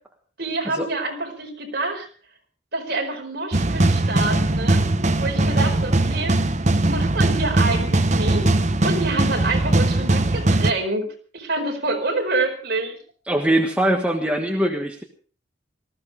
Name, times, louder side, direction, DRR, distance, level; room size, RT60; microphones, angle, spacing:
voice 1, 0.4-2.1 2.7-4.8 5.2-6.4 6.9-8.4 8.8-13.0, right 2 dB, 50° right, 2 dB, 4.7 m, -27 dB
sound 1, 3.5-10.7, right 2 dB, 35° right, 1.0 m, -20 dB
voice 2, 13.3-15.0, right 1 dB, 5° right, 2 dB, 1.4 m, -21 dB
19.0 x 14.5 x 4.9 m, 0.41 s
head